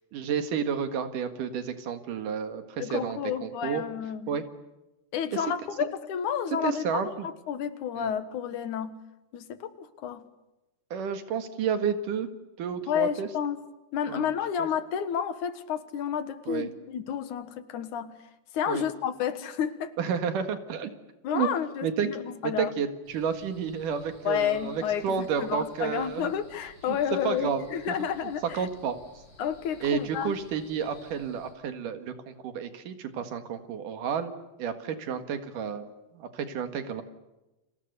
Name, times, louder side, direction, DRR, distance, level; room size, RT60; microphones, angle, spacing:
voice 1, 0.1-3.8 4.3-4.4 5.3-5.4 6.6-7.3 8.0-8.1 10.9-12.3 12.6-13.3 14.1-14.3 16.5-16.7 18.7-18.8 20.0-20.9 21.3-21.5 21.8-22.1 22.4-26.3 26.9-27.0 27.2-27.6 27.9-28.0 28.5-29.0 29.8-34.3 34.6-37.0, right 7 dB, 85° right, 8 dB, 3.4 m, -31 dB
voice 2, 2.8-4.4 5.1-9.0 9.3-10.2 12.9-13.6 13.9-18.1 18.5-19.9 21.2-22.7 24.2-28.7 29.4-30.3, left 8 dB, 75° left, 12 dB, 2.8 m, -31 dB
sound 1, 23.0-31.5, left 2 dB, 35° left, 7.7 m, -54 dB
30.0 x 26.5 x 6.8 m, 1.0 s
omnidirectional pair, 3.6 m